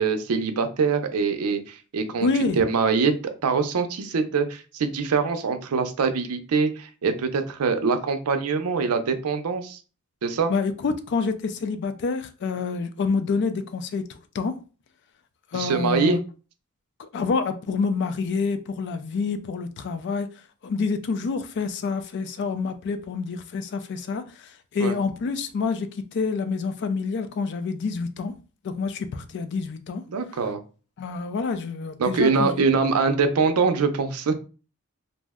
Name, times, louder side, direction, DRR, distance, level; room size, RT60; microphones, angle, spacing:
voice 1, 0.0-2.3 2.6-9.8 10.2-10.5 15.5-16.2 24.8-25.0 30.1-30.6 32.0-34.3, right 5 dB, 75° right, 0.5 m, -23 dB
voice 2, 2.2-2.6 10.5-14.6 15.5-16.2 17.0-20.3 20.6-28.3 28.6-30.0 31.0-32.6, left 4 dB, 50° left, 0.4 m, -27 dB
2.5 x 2.0 x 3.5 m
head